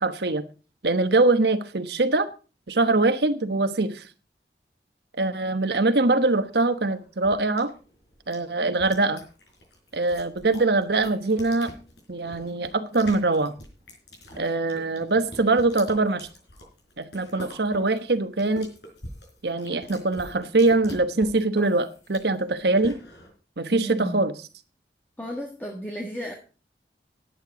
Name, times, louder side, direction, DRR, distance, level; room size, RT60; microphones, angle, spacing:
voice 1, 0.0-0.4 0.8-2.3 2.7-4.1 5.2-7.7 8.3-9.2 9.9-11.7 12.1-13.5 14.4-16.3 17.0-18.7 19.4-23.0 23.6-24.3, right 2 dB, 70° right, 1.1 m, -23 dB
sound 1, 6.3-23.3, equal, 80° left, 4.6 m, -45 dB
voice 2, 23.7-24.2 25.2-26.3, equal, 10° left, 1.5 m, -33 dB
11.5 x 8.9 x 5.0 m
head